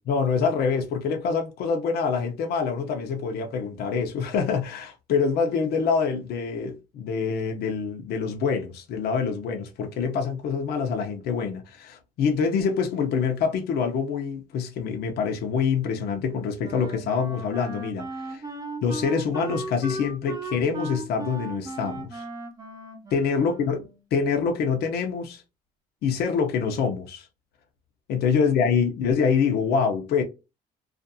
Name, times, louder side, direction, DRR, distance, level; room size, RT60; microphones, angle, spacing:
voice 1, 0.1-18.4 18.8-22.2 23.1-23.8 24.1-25.4 26.0-27.3 28.1-30.2, left 6 dB, 70° left, 0.7 m, -25 dB
Wind instrument woodwind instrument, 16.6-24.0, right 2 dB, 20° right, 0.7 m, -37 dB
2.5 x 2.4 x 2.6 m
cardioid pair, 110°, 17 cm